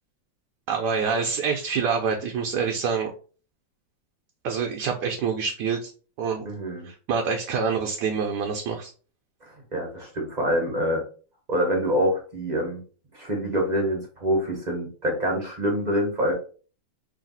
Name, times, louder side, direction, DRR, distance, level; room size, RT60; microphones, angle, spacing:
voice 1, 0.7-3.1 4.4-5.9 6.2-6.5 6.8-8.9, right 5 dB, 70° right, 3 dB, 1.0 m, -26 dB
voice 2, 6.4-6.9 9.4-11.0 11.5-12.8 13.1-16.3, equal, 35° right, 0 dB, 0.7 m, -26 dB
3.2 x 2.7 x 4.0 m, 0.39 s
omnidirectional pair, 2.1 m